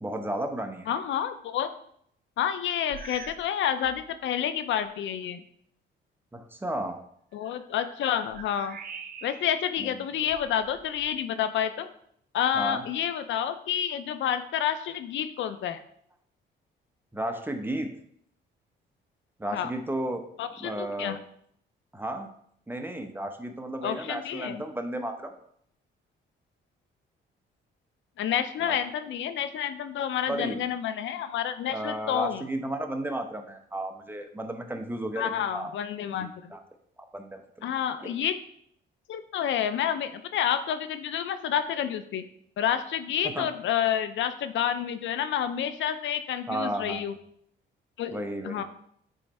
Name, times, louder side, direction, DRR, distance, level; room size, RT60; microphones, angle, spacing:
voice 1, 0.0-0.9 6.3-7.0 9.8-10.0 12.5-12.8 17.1-17.9 19.4-20.2 20.6-21.2 21.9-22.3 22.7-25.3 28.6-28.8 30.3-30.6 31.7-35.7 36.1-36.6 37.1-37.7 38.0-38.1 43.2-43.5 46.5-47.0 48.1-48.6, right 1 dB, 10° right, 5 dB, 0.9 m, -33 dB
voice 2, 0.9-1.7 2.4-5.4 7.3-8.8 9.2-11.9 12.3-15.8 19.5-19.7 20.4-21.2 23.8-24.6 28.2-32.4 35.2-36.5 37.6-38.3 39.1-42.2 42.6-47.1 48.0-48.6, left 9 dB, 70° left, 11 dB, 0.5 m, -29 dB
sound 1, 2.9-3.5 3.8-4.2 4.8-4.9 7.3-9.6 10.2-11.2, right 6 dB, 50° right, 0.7 m, -45 dB
9.0 x 3.2 x 4.2 m, 0.68 s
cardioid pair, 90°, 20 cm